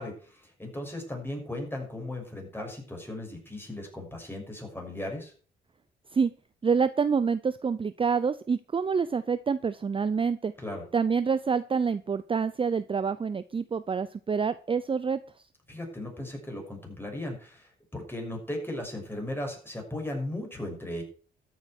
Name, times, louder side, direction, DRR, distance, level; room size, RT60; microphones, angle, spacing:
voice 1, 0.0-5.3 10.6-10.8 15.7-21.0, left 1 dB, 10° left, 1 dB, 6.5 m, -37 dB
voice 2, 6.6-10.5 10.9-15.2, right 5 dB, 25° right, 14 dB, 0.6 m, -27 dB
13.5 x 8.0 x 6.2 m, 0.41 s
cardioid pair, 90°, 20 cm